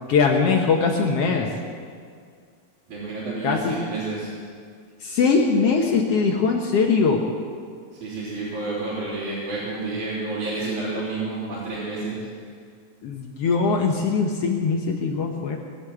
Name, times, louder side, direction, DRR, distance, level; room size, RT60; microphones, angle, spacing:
voice 1, 0.1-1.5 3.4-3.8 5.0-7.2 13.0-15.6, left 5 dB, 80° left, 1 dB, 1.3 m, -21 dB
voice 2, 2.9-4.3 7.9-12.3, right 3 dB, 55° right, -10 dB, 4.9 m, -30 dB
20.0 x 8.4 x 7.9 m, 2.1 s
omnidirectional pair, 4.3 m